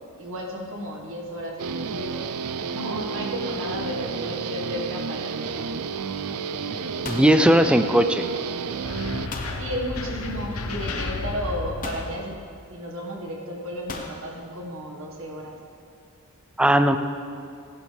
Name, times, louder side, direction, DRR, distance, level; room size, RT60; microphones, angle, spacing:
voice 1, 0.2-2.2 2.7-5.9 9.5-12.4 12.7-15.6, equal, 65° right, -1 dB, 1.8 m, -33 dB
Guitar, 1.6-9.3, right 5 dB, 85° right, 0.5 m, -31 dB
sound 1, 7.0-8.3 9.3-9.6 10.8-10.9 11.8-12.2 13.9-14.2, left 3 dB, 40° left, 1.1 m, -37 dB
voice 2, 7.0-8.3 16.6-17.0, right 1 dB, 5° right, 9 dB, 0.4 m, -18 dB
sound 2, 8.8-12.5, left 2 dB, 80° left, 1.0 m, -32 dB
15.5 x 11.5 x 3.5 m, 2.4 s
head